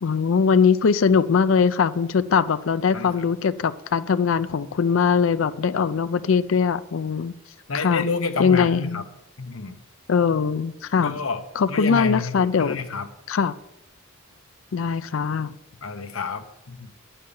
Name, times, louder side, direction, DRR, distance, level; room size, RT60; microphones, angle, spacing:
voice 1, 0.0-7.3 7.7-8.0 8.4-9.0 10.1-11.2 11.6-12.8 13.3-13.5 14.7-15.5, left 6 dB, 70° left, 0.4 m, -21 dB
voice 2, 2.9-3.2 7.7-9.0 9.4-9.8 11.0-13.1 15.8-16.9, left 4 dB, 90° left, 1.0 m, -29 dB
8.8 x 5.6 x 7.0 m
head